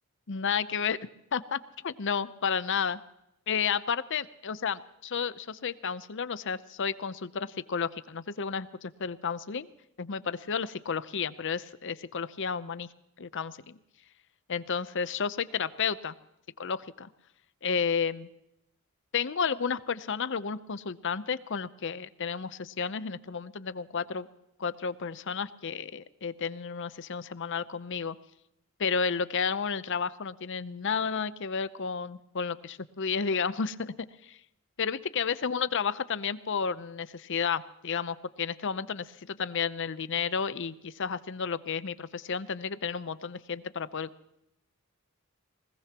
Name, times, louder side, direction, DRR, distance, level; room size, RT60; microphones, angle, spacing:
voice 1, 0.3-1.0 1.3-3.0 3.5-9.7 10.0-12.9 13.2-13.8 14.5-16.1 16.6-17.1 17.6-18.3 19.1-24.3 24.6-28.2 28.8-33.9 34.2-34.4 34.8-44.1, left 6 dB, 55° left, 15 dB, 0.7 m, -32 dB
21.0 x 20.0 x 2.9 m, 0.85 s
head